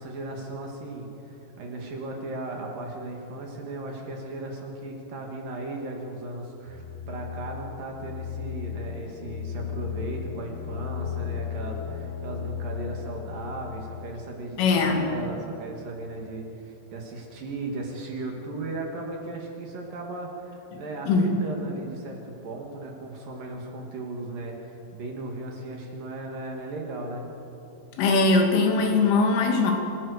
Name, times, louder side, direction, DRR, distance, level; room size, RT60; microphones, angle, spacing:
voice 1, 0.0-27.3, right 2 dB, 55° right, 1 dB, 3.3 m, -36 dB
sound 1, 6.7-16.5, left 9 dB, 65° left, 3.2 m, -36 dB
voice 2, 14.6-15.0 20.7-21.3 28.0-29.7, left 3 dB, 85° left, 2 dB, 4.9 m, -21 dB
27.0 x 16.0 x 6.5 m, 2.8 s
omnidirectional pair, 5.5 m